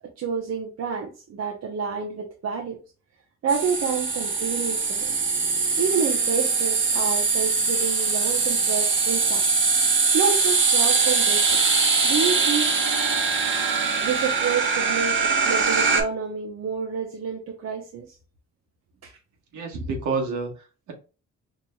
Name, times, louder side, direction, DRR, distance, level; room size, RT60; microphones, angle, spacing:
voice 1, 0.2-2.8 3.4-5.2 5.8-9.4 10.1-11.8 12.0-12.7 14.0-18.2 19.0-19.1 19.7-19.8, right 6 dB, 60° right, 0.8 m, -29 dB
sound 1, 3.5-16.0, right 4 dB, 40° right, 1.1 m, -22 dB
voice 2, 19.5-20.9, right 4 dB, 75° right, 1.4 m, -29 dB
4.8 x 2.7 x 2.3 m
cardioid pair, 90°, 30 cm